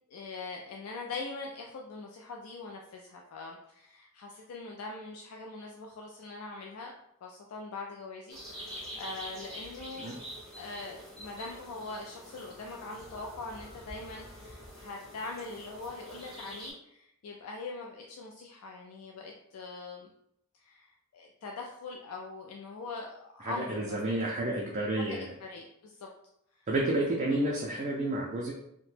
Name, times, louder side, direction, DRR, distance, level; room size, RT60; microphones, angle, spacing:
voice 1, 0.1-6.9 7.2-10.2 10.5-20.1 20.6-24.2 25.0-26.1 26.6-26.7, left 3 dB, 80° left, 0 dB, 0.4 m, -42 dB
sound 1, 8.3-16.7, equal, ahead, 0.9 m, -46 dB
voice 2, 23.4-25.3 26.7-28.5, right 1 dB, 35° right, -2 dB, 0.4 m, -30 dB
2.8 x 2.1 x 3.1 m, 0.77 s
head